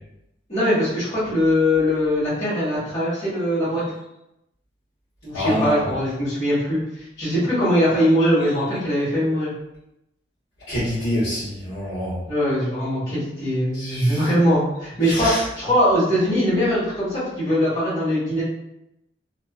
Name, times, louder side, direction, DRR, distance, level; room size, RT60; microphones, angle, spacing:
voice 1, 0.5-3.8 5.2-9.5 12.3-18.4, equal, 30° left, -13 dB, 1.3 m, -21 dB
voice 2, 5.3-5.9 10.7-12.2 13.7-14.2 15.1-15.4, left 1 dB, 75° left, -13 dB, 1.0 m, -26 dB
2.4 x 2.3 x 2.3 m, 0.86 s
head